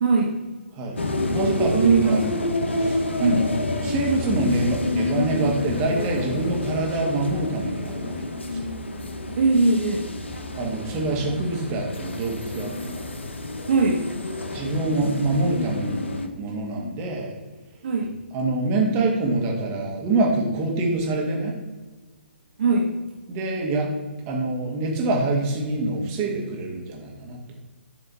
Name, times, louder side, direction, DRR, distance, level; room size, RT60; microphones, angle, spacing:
voice 1, 0.0-0.3 1.7-2.2 3.2-3.4 9.4-10.1 13.7-14.0 17.8-18.1 22.6-22.9, right 4 dB, 55° right, 1 dB, 0.7 m, -20 dB
sound 1, 1.0-16.3, left 2 dB, 80° left, 0.7 m, -29 dB
voice 2, 1.3-8.7 10.5-13.1 14.5-17.4 18.3-21.6 23.3-23.9 24.3-27.5, right 2 dB, 30° right, -1 dB, 1.4 m, -26 dB
7.2 x 3.2 x 4.2 m, 1.3 s
figure-of-eight pair, 130°, 6 cm